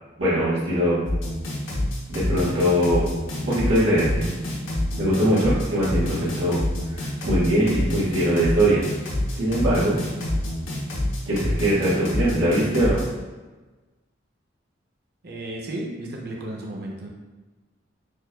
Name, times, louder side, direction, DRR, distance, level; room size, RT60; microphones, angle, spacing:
voice 1, 0.2-1.0 2.1-3.0 3.5-4.2 5.0-6.6 6.9-8.8 9.3-10.0 11.2-13.0, equal, 85° right, -12 dB, 1.4 m, -21 dB
sound 1, 1.1-13.1, left 1 dB, 90° left, 1.0 m, -27 dB
voice 2, 15.2-17.1, right 1 dB, 55° right, -1 dB, 0.7 m, -33 dB
6.2 x 2.4 x 2.2 m, 1.2 s
head